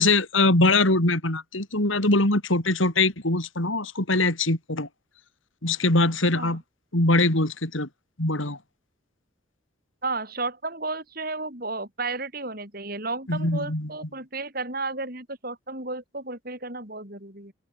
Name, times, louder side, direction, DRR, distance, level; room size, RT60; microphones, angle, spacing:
voice 1, 0.0-4.9 5.6-6.6 6.9-7.9 8.2-8.6 13.3-13.9, left 2 dB, 75° left, 4.5 m, -22 dB
voice 2, 10.0-17.5, right 3 dB, 45° right, 7.3 m, -33 dB
head